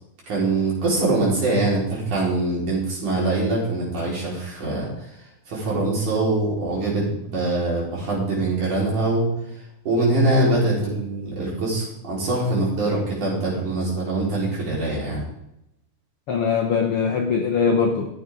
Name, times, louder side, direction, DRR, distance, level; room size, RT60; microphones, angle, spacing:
voice 1, 0.3-4.9 5.5-9.3 9.9-15.2, right 2 dB, 60° right, -5 dB, 5.8 m, -23 dB
voice 2, 16.3-18.1, left 6 dB, 70° left, 3 dB, 1.4 m, -21 dB
15.0 x 8.5 x 3.7 m, 0.84 s
omnidirectional pair, 3.9 m